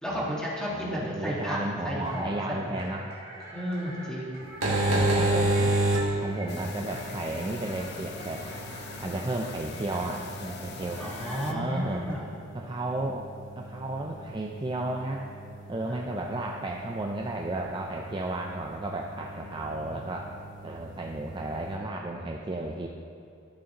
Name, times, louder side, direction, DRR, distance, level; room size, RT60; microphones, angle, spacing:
voice 1, 0.0-1.6 1.8-2.8 3.5-4.4 11.0-12.3 15.9-16.1 19.6-20.0, equal, 5° left, -6 dB, 1.6 m, -33 dB
voice 2, 0.7-3.1 4.9-5.7 6.2-8.5 9.0-11.0 11.5-12.1 12.5-13.3 13.6-15.3 15.7-20.3 20.6-22.9, right 2 dB, 25° right, 0 dB, 0.4 m, -33 dB
sound 1, 2.0-12.2, right 1 dB, 30° left, 1.6 m, -45 dB
sound 2, 4.4-21.7, right 1 dB, 75° right, 1.8 m, -33 dB
sound 3, 6.5-11.5, left 5 dB, 55° left, 0.5 m, -43 dB
12.5 x 6.4 x 2.9 m, 2.7 s
head